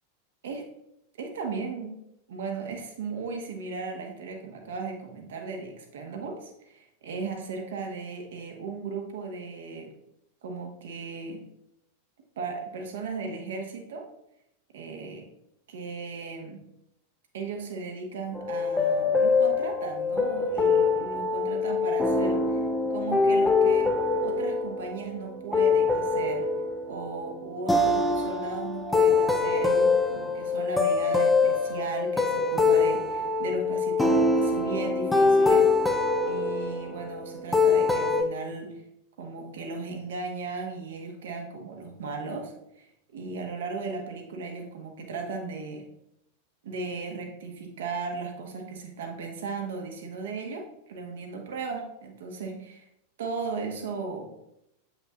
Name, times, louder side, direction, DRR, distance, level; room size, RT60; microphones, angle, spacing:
voice 1, 1.2-1.9 2.3-9.9 10.4-11.4 12.4-14.1 14.7-15.3 15.7-16.6 17.3-22.6 22.9-23.9 24.2-26.5 26.8-35.7 36.2-38.8 39.2-42.9 43.1-45.8 46.6-52.8 53.2-54.4, right 4 dB, 60° right, 2 dB, 1.3 m, -36 dB
sound 1, 18.4-38.2, left 4 dB, 10° left, 0.5 m, -24 dB
7.7 x 5.6 x 2.4 m, 0.82 s
figure-of-eight pair, 90°, 0 cm